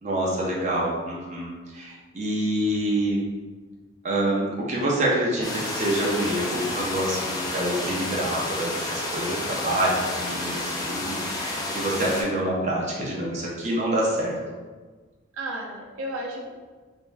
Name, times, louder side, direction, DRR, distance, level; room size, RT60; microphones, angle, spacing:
voice 1, 0.0-3.2 4.0-14.4, right 1 dB, 35° right, -4 dB, 0.5 m, -26 dB
sound 1, 5.4-12.2, left 2 dB, 20° left, 0.3 m, -30 dB
voice 2, 15.3-16.5, right 1 dB, 90° right, -1 dB, 0.5 m, -34 dB
3.4 x 2.1 x 2.5 m, 1.4 s
head